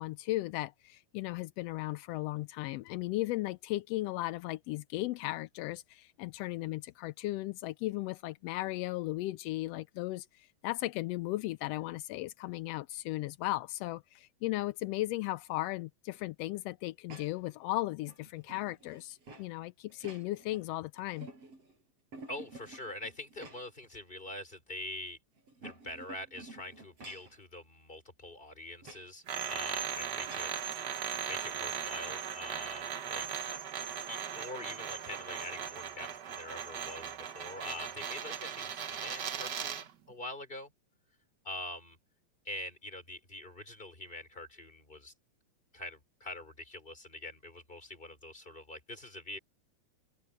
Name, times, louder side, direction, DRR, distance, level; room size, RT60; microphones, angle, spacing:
voice 1, 0.0-21.3, left 18 dB, 85° left, 1.4 m, -36 dB
sound 1, 17.1-17.5 18.0-19.5 19.9-20.6 21.0-21.7 22.1-23.9 24.3-24.4 25.4-27.4 28.8-29.1 30.3-30.6, right 2 dB, 55° right, 7.9 m, -51 dB
voice 2, 22.3-25.2 25.6-30.5 30.8-33.2 34.1-40.7 41.4-42.0 42.4-45.1 45.7-49.4, left 1 dB, 15° left, 4.7 m, -44 dB
sound 2, 29.3-39.9, right 8 dB, 70° right, 0.9 m, -38 dB
omnidirectional pair, 3.4 m